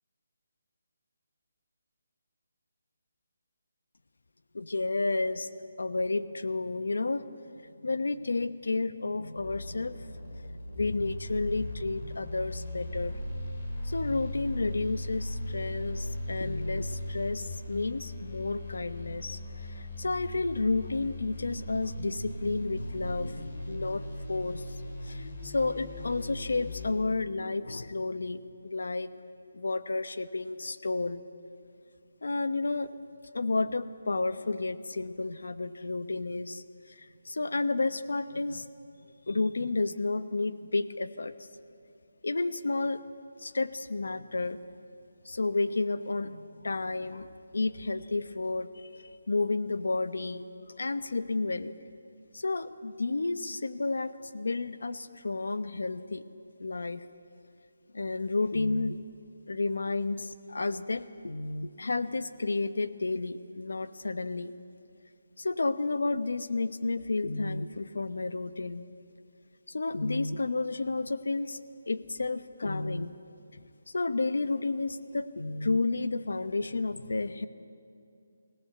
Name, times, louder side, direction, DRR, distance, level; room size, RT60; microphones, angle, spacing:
voice 1, 4.5-5.5 5.8-7.3 7.8-13.1 13.8-24.7 25.0-28.5 28.7-29.1 29.5-31.3 32.2-32.9 33.3-38.7 39.3-41.3 42.2-43.0 43.4-44.6 45.2-50.5 50.8-51.7 52.3-56.2 56.6-57.0 57.9-59.0 59.5-64.5 65.4-68.8 69.7-71.6 71.9-73.1 73.5-73.6 73.9-77.5, left 3 dB, 90° left, 12 dB, 1.0 m, -31 dB
sound 1, 9.4-26.9, left 1 dB, 40° left, 4.3 m, -38 dB
27.0 x 17.5 x 8.0 m, 2.6 s
hypercardioid pair, 175°, 0 cm